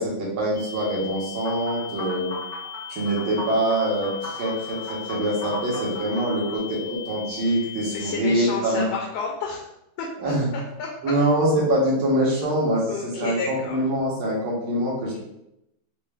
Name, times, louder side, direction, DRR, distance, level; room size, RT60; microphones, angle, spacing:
voice 1, 0.0-2.3 2.9-8.9 10.2-10.5 11.0-12.9 13.2-15.2, right 1 dB, 70° right, -5 dB, 1.9 m, -24 dB
sound 1, 0.5-8.2, left 10 dB, 90° right, 1.8 m, -39 dB
sound 2, 1.4-6.6, equal, 20° right, 0.9 m, -37 dB
voice 2, 7.5-9.7 10.0-10.9 12.9-13.8 15.1-15.2, left 4 dB, 75° left, -1 dB, 1.3 m, -32 dB
4.5 x 2.1 x 3.3 m, 0.83 s
omnidirectional pair, 2.4 m